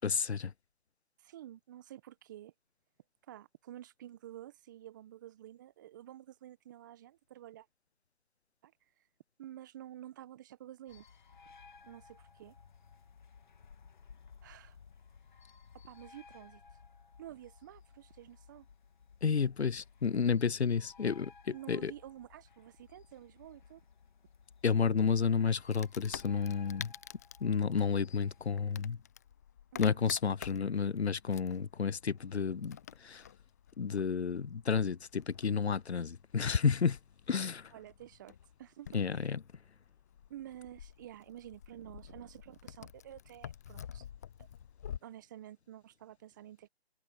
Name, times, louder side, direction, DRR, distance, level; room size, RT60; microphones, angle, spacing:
voice 1, 0.0-0.5 19.2-21.3 21.7-21.9 24.6-26.9 27.4-29.0 29.8-32.8 33.0-33.2 33.8-37.0 37.3-37.7 38.9-39.4, left 6 dB, 85° left, 0.7 m, -31 dB
voice 2, 1.2-2.5 3.3-7.7 8.6-8.7 9.4-11.1 11.8-12.5 14.4-14.8 15.7-16.6 17.2-18.7 21.5-23.8 29.7-30.0 37.7-39.3 40.3-44.0 44.4-44.5 45.0-46.7, right 12 dB, 20° right, 1.1 m, -50 dB
sound 1, 10.9-28.5, left 5 dB, 45° left, 2.3 m, -58 dB
Wood, 25.7-45.0, left 9 dB, 15° left, 0.8 m, -50 dB
figure-of-eight pair, 155°, 32 cm